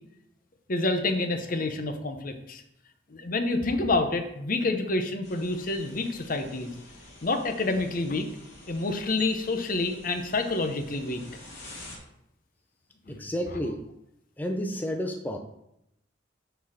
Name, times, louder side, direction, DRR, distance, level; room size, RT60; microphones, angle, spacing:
voice 1, 0.7-2.6 3.1-6.7 7.2-8.3 8.7-11.2 13.1-13.2, left 2 dB, 45° left, 7 dB, 0.8 m, -28 dB
sound 1, 5.2-12.0, left 1 dB, 65° left, 2.7 m, -48 dB
voice 2, 13.1-13.8 14.4-15.4, equal, 10° left, 3 dB, 0.5 m, -31 dB
6.8 x 4.1 x 6.3 m, 0.79 s
head